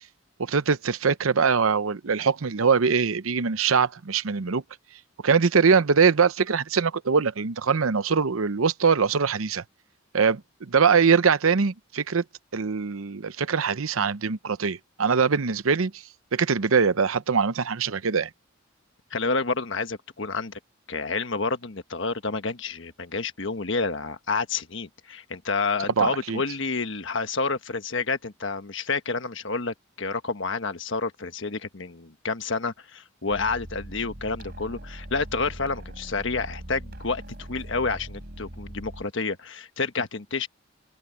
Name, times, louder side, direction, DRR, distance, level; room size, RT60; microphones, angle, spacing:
voice 1, 0.4-4.6 5.2-9.6 10.1-12.2 12.5-16.0 16.3-18.3 26.0-26.4, right 5 dB, 80° right, 0.7 m, -22 dB
voice 2, 19.1-20.5 20.9-40.5, left 4 dB, 60° left, 1.3 m, -29 dB
sound 1, 33.3-39.0, equal, 50° right, 4.0 m, -41 dB
open air
head